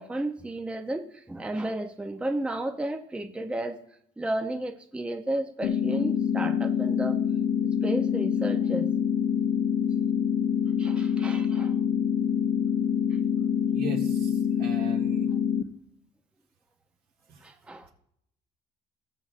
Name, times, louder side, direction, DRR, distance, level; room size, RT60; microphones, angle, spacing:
voice 1, 0.0-3.8 4.2-7.2 7.8-8.9 10.8-11.7 17.4-17.9, right 1 dB, 5° right, 6 dB, 0.6 m, -32 dB
sound 1, 5.6-15.6, left 8 dB, 70° left, 0.8 m, -26 dB
voice 2, 13.7-15.3, right 4 dB, 70° right, 0 dB, 2.1 m, -38 dB
20.0 x 6.8 x 2.5 m, 0.70 s
cardioid pair, 135°, 16 cm